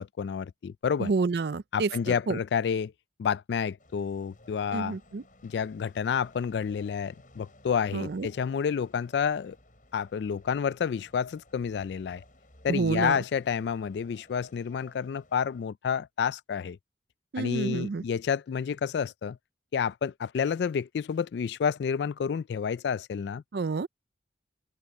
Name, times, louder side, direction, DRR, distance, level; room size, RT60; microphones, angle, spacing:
voice 1, 0.0-1.1 1.7-2.9 3.2-5.0 5.4-9.6 9.9-12.2 12.6-16.8 17.4-19.4 19.7-23.4, left 7 dB, 70° left, 0.3 m, -29 dB
voice 2, 1.0-2.4 4.7-5.2 7.9-8.3 12.7-13.2 17.3-18.0 23.5-23.9, right 4 dB, 60° right, 0.5 m, -29 dB
sound 1, 3.8-15.7, left 1 dB, 45° left, 7.9 m, -57 dB
open air
head